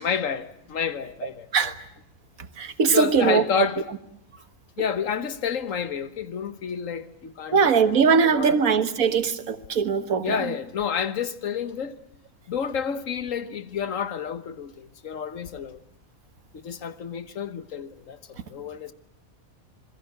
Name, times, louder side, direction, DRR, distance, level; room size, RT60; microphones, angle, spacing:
voice 1, 0.0-1.7 2.9-3.8 4.8-7.9 8.2-8.5 10.2-11.9 12.5-15.8 16.5-18.9, left 7 dB, 65° left, 1.6 m, -30 dB
voice 2, 2.6-3.7 7.5-10.5, right 6 dB, 80° right, 1.8 m, -21 dB
27.0 x 22.0 x 7.9 m
omnidirectional pair, 1.5 m